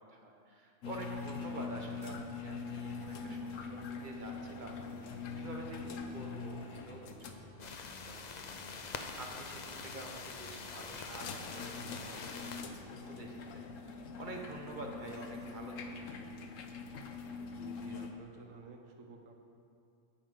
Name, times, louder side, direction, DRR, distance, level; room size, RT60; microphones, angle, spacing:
voice 1, 0.1-2.1 2.4-7.4 7.6-7.7 8.0-13.6 14.2-15.9, right 2 dB, 40° right, 1 dB, 1.2 m, -48 dB
sound 1, 0.8-18.1, left 4 dB, 80° left, 1.1 m, -44 dB
sound 2, 7.6-12.6, left 5 dB, 45° left, 0.6 m, -45 dB
voice 2, 17.6-19.3, right 3 dB, 90° right, 3 dB, 1.4 m, -51 dB
9.4 x 8.5 x 5.2 m, 2.4 s
omnidirectional pair, 1.3 m